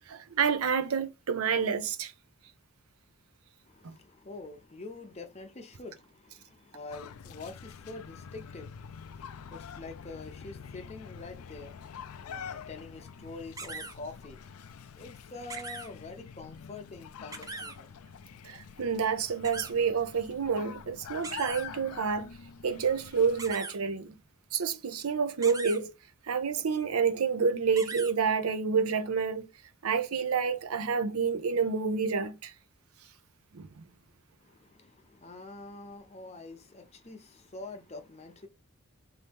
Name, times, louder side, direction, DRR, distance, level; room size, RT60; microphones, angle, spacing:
voice 1, 0.0-2.1 3.8-3.9 18.4-22.3 22.6-24.1 24.5-25.9 26.3-29.5 29.8-32.5 33.5-33.8, right 6 dB, 75° right, 0.6 m, -29 dB
voice 2, 3.7-14.6 15.0-17.9 34.4-38.5, left 3 dB, 30° left, 0.6 m, -46 dB
sound 1, 6.9-23.5, left 7 dB, 80° left, 0.4 m, -46 dB
sound 2, 13.6-13.9 15.5-15.9 17.3-17.7 19.4-19.7 21.2-21.6 23.4-23.8 25.4-25.8 27.8-28.1, right 3 dB, 15° right, 0.4 m, -39 dB
4.1 x 2.8 x 3.4 m
head